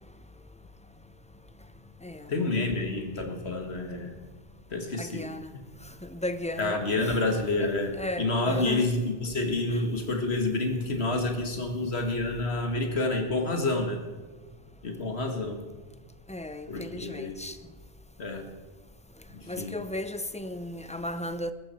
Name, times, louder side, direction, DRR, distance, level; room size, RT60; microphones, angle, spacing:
voice 1, 2.3-4.2 4.7-5.2 5.5-5.6 6.6-14.0 14.8-15.6 16.7-17.4 18.2-18.5 19.3-19.8, left 2 dB, 70° left, 2.1 m, -29 dB
voice 2, 5.0-5.5 6.0-7.7 8.0-8.9 9.7-9.8 16.3-17.6 19.5-21.5, left 1 dB, 10° left, 0.5 m, -36 dB
21.5 x 13.0 x 4.4 m
omnidirectional pair, 1.1 m